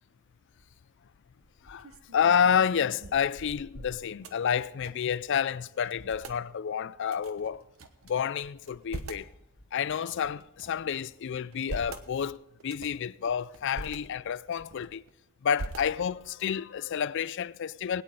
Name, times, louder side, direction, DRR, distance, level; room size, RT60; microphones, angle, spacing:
sound 1, 0.5-0.9 1.4-5.2 5.4-5.5 5.8-6.4 7.1-8.1 8.6-9.3 9.9-10.8 11.4-12.1 12.6-13.1 13.5-14.0 14.5-15.1 15.5-16.3, right 2 dB, 70° right, 1.1 m, -43 dB
voice 1, 1.6-7.6 8.0-9.3 9.7-15.0 15.4-18.0, left 7 dB, 55° left, 0.4 m, -29 dB
sound 2, 6.0-6.4 7.2-7.6 8.4-8.8 9.5-10.0 10.7-11.1 12.0-12.4 13.2-13.6 14.6-15.0 15.7-16.1, left 1 dB, 35° left, 1.5 m, -59 dB
21.5 x 9.4 x 3.8 m
head